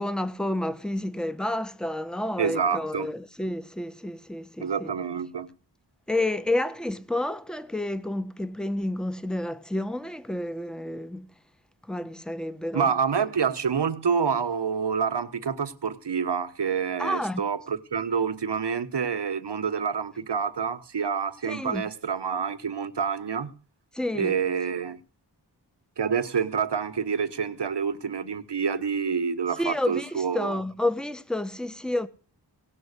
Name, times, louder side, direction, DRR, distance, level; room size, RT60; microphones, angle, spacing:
voice 1, 0.0-5.0 6.1-11.3 11.9-13.0 17.0-17.4 21.5-21.8 23.9-24.5 29.5-32.1, left 1 dB, ahead, 1.1 m, -30 dB
voice 2, 2.4-3.1 4.6-5.5 12.7-23.6 24.1-25.0 26.0-30.6, right 6 dB, 70° right, 1.2 m, -27 dB
17.5 x 6.1 x 8.1 m
cardioid pair, 45°, 43 cm